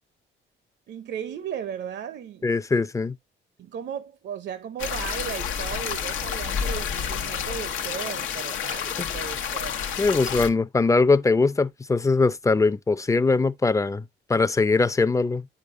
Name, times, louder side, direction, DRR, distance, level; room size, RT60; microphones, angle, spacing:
voice 1, 0.9-2.5 3.6-9.8, right 9 dB, 60° right, 0.7 m, -36 dB
voice 2, 2.4-3.1 9.0-9.1 10.0-14.0 14.3-15.4, left 3 dB, 15° left, 0.5 m, -21 dB
sound 1, 4.8-10.5, left 8 dB, 85° left, 1.0 m, -29 dB
9.1 x 5.1 x 2.6 m
cardioid pair, 90°, 20 cm